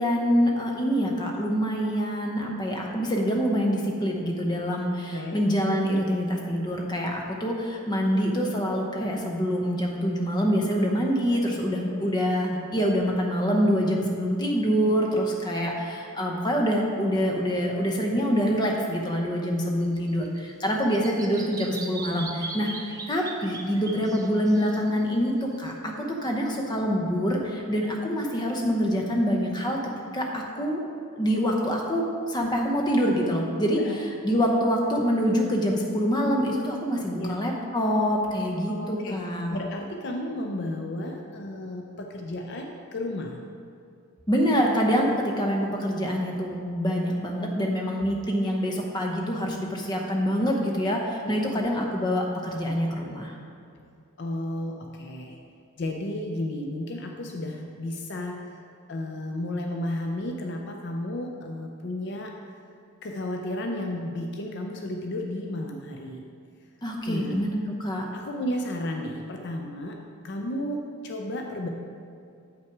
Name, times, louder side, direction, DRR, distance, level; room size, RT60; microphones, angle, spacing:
voice 1, 0.0-29.8 30.1-30.8 31.1-33.8 34.2-39.6 44.3-53.3 66.8-68.1, equal, 20° left, 0 dB, 0.7 m, -25 dB
Bird vocalization bird call bird song, 19.8-25.7, right 3 dB, 15° right, 0.4 m, -40 dB
voice 2, 38.7-39.2 39.5-43.4 51.2-51.8 54.2-55.4 55.8-58.6 58.9-62.3 63.0-66.2 67.1-67.4 68.1-70.0 70.2-71.7, left 1 dB, 50° left, 2 dB, 0.5 m, -33 dB
7.6 x 5.7 x 4.6 m, 2.4 s
head